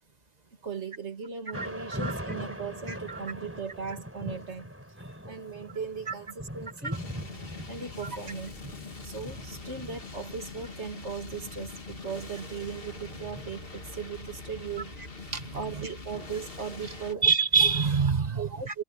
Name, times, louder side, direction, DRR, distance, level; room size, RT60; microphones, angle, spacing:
voice 1, 0.6-4.7 5.3-7.0 7.7-8.5 9.0-15.0 15.5-17.3 18.4-18.8, right 5 dB, 70° right, 2.6 m, -38 dB
Thunder / Rain, 1.5-17.5, equal, 10° right, 4.5 m, -42 dB
voice 2, 2.9-3.2 6.1-6.2 6.8-7.0 15.3-15.9 17.2-18.7, right 6 dB, 35° right, 1.7 m, -26 dB
sound 1, 6.9-17.1, left 3 dB, 50° left, 2.3 m, -43 dB
omnidirectional pair, 1.2 m